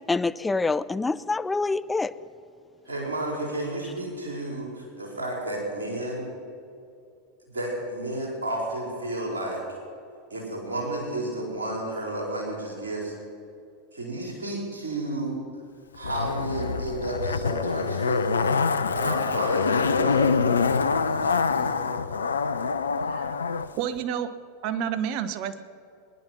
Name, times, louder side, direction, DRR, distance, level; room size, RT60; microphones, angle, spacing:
voice 1, 0.1-2.1, left 3 dB, 10° left, 14 dB, 0.6 m, -26 dB
voice 2, 2.8-6.3 7.5-9.6 10.3-13.1 13.9-15.4 15.9-18.5 18.8-20.4 21.0-21.8, right 1 dB, 80° right, -2 dB, 4.4 m, -32 dB
Zipper (clothing), 16.0-23.7 24.0-24.1, left 5 dB, 85° left, 0.6 m, -25 dB
voice 3, 23.8-24.3 24.6-25.6, right 8 dB, 50° right, 12 dB, 0.9 m, -29 dB
22.5 x 10.5 x 6.0 m, 2.5 s
figure-of-eight pair, 90°, 0 cm